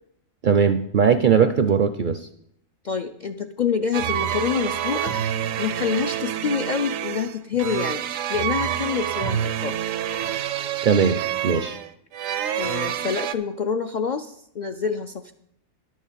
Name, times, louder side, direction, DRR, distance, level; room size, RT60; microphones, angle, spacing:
voice 1, 0.4-2.3 10.8-11.8, right 6 dB, 55° right, 10 dB, 0.5 m, -19 dB
voice 2, 2.8-5.1 5.6-8.0 8.3-9.8 12.6-15.3, left 6 dB, 60° left, 6 dB, 0.5 m, -27 dB
sound 1, 3.9-13.3, right 10 dB, 85° right, 1.0 m, -27 dB
11.5 x 6.4 x 7.3 m, 0.73 s
omnidirectional pair, 1.3 m